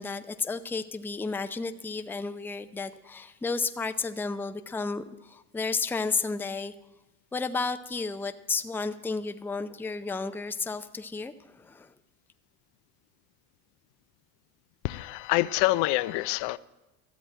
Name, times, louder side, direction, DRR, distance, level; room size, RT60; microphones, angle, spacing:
voice 1, 0.0-6.7 7.3-11.9, left 4 dB, 5° left, 9 dB, 0.5 m, -32 dB
voice 2, 14.8-16.6, left 19 dB, 65° left, 16 dB, 0.6 m, -26 dB
13.5 x 7.8 x 8.8 m, 1.0 s
supercardioid pair, 105°, 43 cm